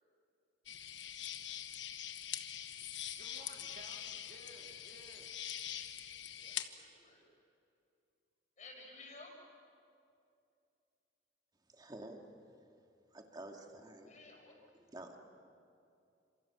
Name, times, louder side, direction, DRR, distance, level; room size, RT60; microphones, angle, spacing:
sound 1, 0.7-6.7, left 10 dB, 85° left, 1.3 m, -44 dB
voice 1, 3.2-5.4, right 2 dB, 55° right, 1 dB, 2.7 m, -57 dB
voice 2, 6.3-7.2 8.6-9.3 14.0-14.5, left 3 dB, 45° left, 1 dB, 5.8 m, -55 dB
voice 3, 11.7-12.3 13.1-14.1 14.7-15.2, right 1 dB, 25° right, 3 dB, 2.3 m, -50 dB
29.0 x 27.0 x 7.2 m, 2.5 s
head